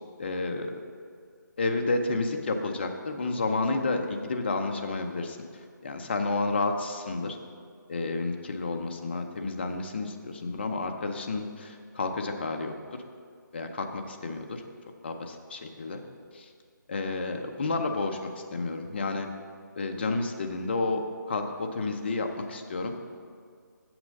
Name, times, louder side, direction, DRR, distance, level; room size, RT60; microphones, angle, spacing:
voice 1, 0.2-0.8 1.6-5.4 5.8-7.4 7.9-12.7 13.5-14.6 15.0-16.0 16.3-16.5 16.9-18.2 18.5-19.3 19.8-22.9, left 3 dB, 30° left, 4 dB, 0.6 m, -30 dB
7.4 x 6.0 x 6.4 m, 2.1 s
hypercardioid pair, 170°, 11 cm